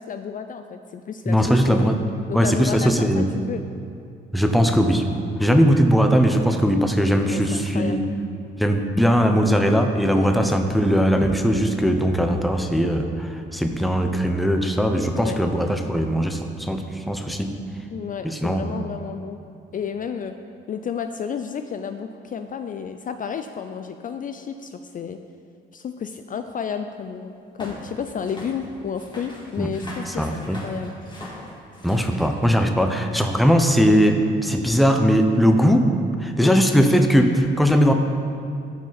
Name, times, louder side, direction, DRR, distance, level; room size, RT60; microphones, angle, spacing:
voice 1, 0.0-2.0 2.3-3.6 7.3-8.0 10.1-10.3 15.1-15.4 17.9-19.4 19.7-20.4 20.7-25.2 25.7-27.3 27.6-30.9 36.4-36.5, left 7 dB, 45° left, 8 dB, 0.4 m, -31 dB
voice 2, 1.3-2.0 2.3-3.3 4.3-5.0 5.4-8.0 8.6-17.5 18.2-18.7 29.6-29.7 30.2-30.6 31.8-35.9 36.2-37.9, equal, ahead, 5 dB, 0.7 m, -19 dB
sound 1, 27.6-32.8 33.6-33.7 34.4-34.5, left 1 dB, 20° left, 2.0 m, -41 dB
13.5 x 5.0 x 4.1 m, 2.4 s
cardioid pair, 90°, 20 cm